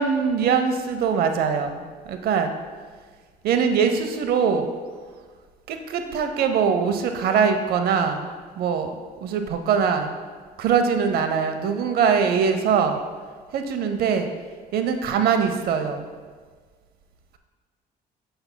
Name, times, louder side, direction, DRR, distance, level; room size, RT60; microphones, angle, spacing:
voice 1, 0.0-2.5 3.4-4.7 5.7-8.9 9.2-10.1 10.6-13.0 13.5-14.3 14.7-16.1, right 6 dB, 65° right, 7 dB, 0.6 m, -22 dB
7.8 x 6.9 x 2.2 m, 1.5 s
cardioid pair, 110°, 17 cm